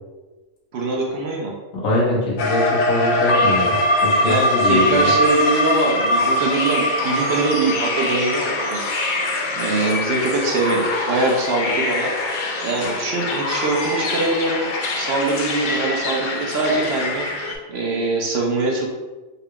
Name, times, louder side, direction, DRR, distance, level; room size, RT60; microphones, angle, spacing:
voice 1, 0.7-1.5 4.2-8.9 9.6-12.1 12.6-14.7 15.0-18.9, right 3 dB, 60° right, -1 dB, 0.8 m, -23 dB
voice 2, 1.8-3.8 4.0-5.1, left 1 dB, 90° left, -5 dB, 1.5 m, -22 dB
sound 1, 2.4-17.5, left 1 dB, 65° left, 0.5 m, -22 dB
3.8 x 3.1 x 2.3 m, 1.2 s
omnidirectional pair, 1.4 m